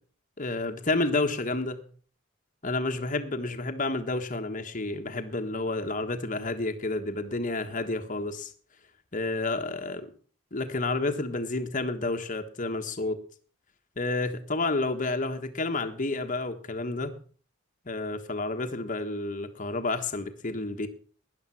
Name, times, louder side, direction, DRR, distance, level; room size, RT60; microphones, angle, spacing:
voice 1, 0.4-1.8 2.6-8.5 9.1-10.1 10.5-13.2 14.0-17.1 17.8-20.9, left 2 dB, 40° left, 6 dB, 1.4 m, -30 dB
12.5 x 10.5 x 5.8 m, 0.42 s
head